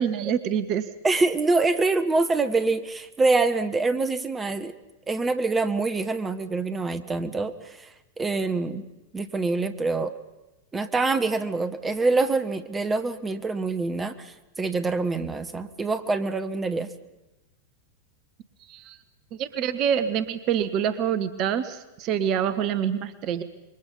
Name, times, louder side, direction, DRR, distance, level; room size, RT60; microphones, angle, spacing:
voice 1, 0.0-0.9 18.7-19.0 19.4-23.4, right 8 dB, 40° right, 13 dB, 1.1 m, -26 dB
voice 2, 1.0-4.7 5.1-7.9 8.2-8.9 9.1-10.1 10.7-16.9, right 3 dB, 15° right, 11 dB, 1.2 m, -25 dB
26.5 x 22.5 x 5.5 m, 1.0 s
figure-of-eight pair, 90°, 0 cm